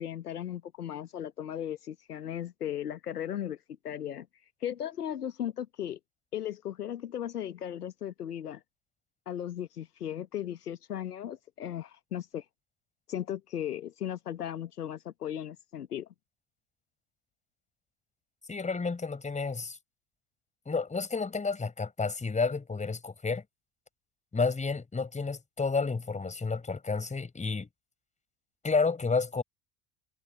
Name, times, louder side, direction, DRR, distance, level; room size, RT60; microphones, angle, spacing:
voice 1, 0.0-3.6 3.8-4.3 4.6-6.0 6.3-8.6 9.3-12.4 13.1-16.1, left 10 dB, 75° left, 1.2 m, -36 dB
voice 2, 18.5-19.8 20.7-23.4 24.3-27.7 28.6-29.4, left 4 dB, 15° left, 4.7 m, -30 dB
figure-of-eight pair, 70°, 47 cm